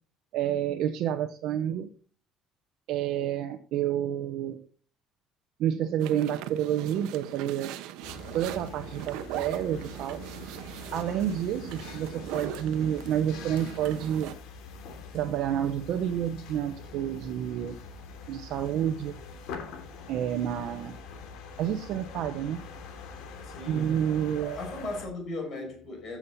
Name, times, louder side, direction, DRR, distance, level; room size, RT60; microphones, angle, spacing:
voice 1, 0.3-1.9 2.9-4.6 5.6-7.7 8.3-10.2 10.9-14.4 15.1-17.8 18.3-19.2 20.1-21.0 21.6-22.7 23.7-24.6, right 10 dB, 60° right, 1.0 m, -29 dB
sound 1, 6.0-14.3, right 12 dB, 90° right, 1.2 m, -41 dB
sound 2, 8.0-25.1, left 5 dB, 75° left, 3.1 m, -44 dB
voice 2, 23.4-24.0 24.4-26.2, left 2 dB, 35° left, 6.2 m, -37 dB
15.0 x 7.5 x 4.2 m
cardioid pair, 175°, 0 cm